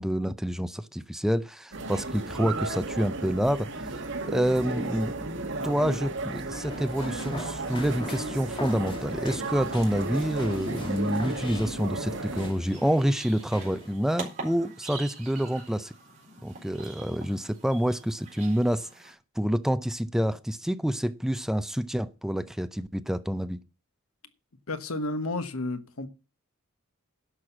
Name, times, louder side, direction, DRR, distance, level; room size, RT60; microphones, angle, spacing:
voice 1, 0.0-3.9 4.3-5.3 5.6-15.9 16.4-23.6, equal, ahead, 0.5 m, -28 dB
sound 1, 1.7-12.5, right 2 dB, 60° right, 2.0 m, -34 dB
sound 2, 6.5-14.0, left 1 dB, 25° left, 2.4 m, -42 dB
sound 3, 12.3-19.1, right 4 dB, 35° right, 4.2 m, -44 dB
voice 2, 24.7-26.1, left 2 dB, 75° left, 1.2 m, -31 dB
11.5 x 6.3 x 7.2 m
head